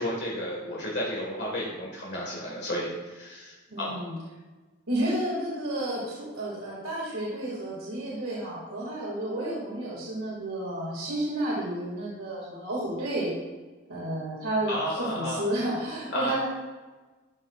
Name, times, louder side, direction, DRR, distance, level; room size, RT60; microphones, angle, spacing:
voice 1, 0.0-4.1 14.7-15.4 16.1-16.5, equal, 55° left, -4 dB, 1.7 m, -32 dB
voice 2, 3.7-4.1 4.9-13.3 13.9-16.5, right 1 dB, 85° right, -6 dB, 2.1 m, -31 dB
12.5 x 6.6 x 2.4 m, 1.3 s
head